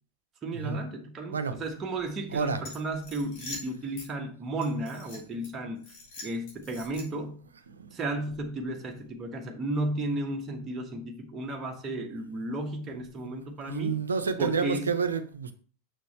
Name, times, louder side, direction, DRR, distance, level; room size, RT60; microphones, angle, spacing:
voice 1, 0.4-5.9 6.2-7.4 7.9-14.0 14.4-14.9, right 1 dB, 20° right, 2 dB, 1.3 m, -34 dB
voice 2, 2.3-2.6 7.7-7.9 13.7-15.5, right 5 dB, 70° right, 10 dB, 0.8 m, -29 dB
sound 1, 2.6-4.1 4.6-5.5 5.8-7.3, left 3 dB, 50° left, 3.4 m, -44 dB
6.7 x 6.1 x 3.2 m, 0.42 s
figure-of-eight pair, 90°, 0 cm